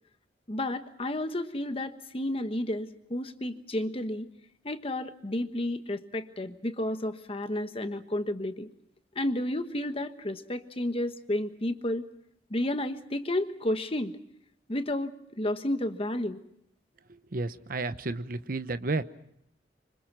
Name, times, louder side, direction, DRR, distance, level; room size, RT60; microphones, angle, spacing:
voice 1, 0.5-4.3 4.6-8.7 9.1-12.0 12.5-14.1 14.7-16.4, left 1 dB, 35° left, 9 dB, 1.3 m, -31 dB
voice 2, 17.1-19.0, right 3 dB, 55° right, 12 dB, 1.0 m, -32 dB
26.0 x 25.0 x 6.0 m, 0.74 s
head